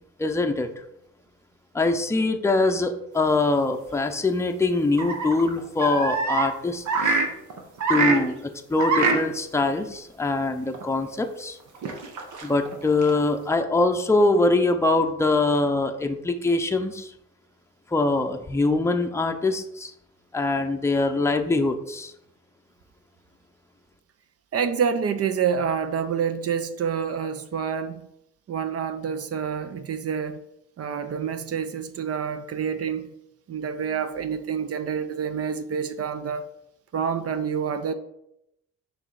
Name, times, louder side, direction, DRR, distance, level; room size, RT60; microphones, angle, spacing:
voice 1, 0.2-0.7 1.7-7.1 7.9-11.6 12.4-17.1 17.9-19.9 20.3-22.1, left 2 dB, 10° left, 0.6 m, -23 dB
sound 1, 3.3-3.4 5.0-6.5 6.8-8.2 8.8-9.2 9.5-9.6 10.7-10.8 11.7-13.2, right 4 dB, 70° right, 1.1 m, -24 dB
voice 2, 24.5-28.1 28.5-30.4 30.8-33.1 33.5-36.5 36.9-37.9, right 7 dB, 50° right, 0.6 m, -27 dB
6.1 x 3.3 x 4.8 m
cardioid pair, 85°, 31 cm